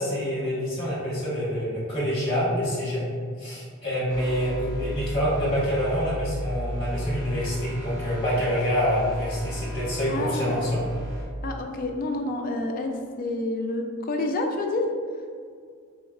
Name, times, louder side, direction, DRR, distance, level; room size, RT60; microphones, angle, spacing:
voice 1, 0.0-3.0 3.4-10.8, equal, 25° left, -7 dB, 1.3 m, -26 dB
sound 1, 4.1-11.2, equal, 85° right, 1.5 m, -35 dB
voice 2, 10.1-10.6 11.4-14.9, left 2 dB, 40° left, 3 dB, 0.3 m, -28 dB
4.2 x 3.1 x 2.4 m, 2.1 s
head